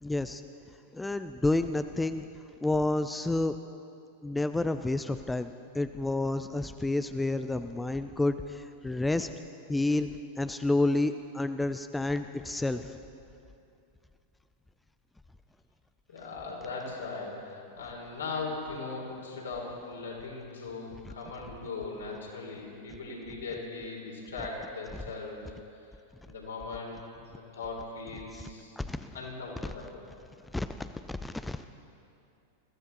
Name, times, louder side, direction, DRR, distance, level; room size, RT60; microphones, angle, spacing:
voice 1, 0.0-0.4 0.9-2.2 2.6-3.6 4.2-9.3 9.7-10.1 10.4-12.9 21.0-21.1 24.9-25.0 28.3-28.5 28.8-29.1 29.6-29.7 30.5-31.7, left 2 dB, 5° left, 10 dB, 0.4 m, -30 dB
voice 2, 16.1-25.5 26.3-27.0 27.3-28.8 29.1-30.0, left 3 dB, 70° left, -2 dB, 3.8 m, -39 dB
21.5 x 15.0 x 4.1 m, 2.6 s
figure-of-eight pair, 90°, 0 cm